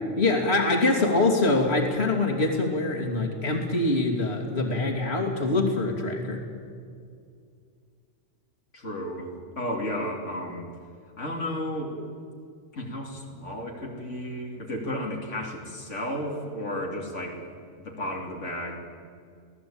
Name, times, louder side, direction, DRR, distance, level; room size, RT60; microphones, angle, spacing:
voice 1, 0.2-6.4, left 2 dB, 60° left, 0 dB, 3.1 m, -24 dB
voice 2, 8.7-10.7 11.2-12.0 12.7-17.4 17.8-18.8, left 1 dB, 80° left, -1 dB, 3.1 m, -33 dB
25.5 x 17.5 x 8.7 m, 2.3 s
omnidirectional pair, 1.2 m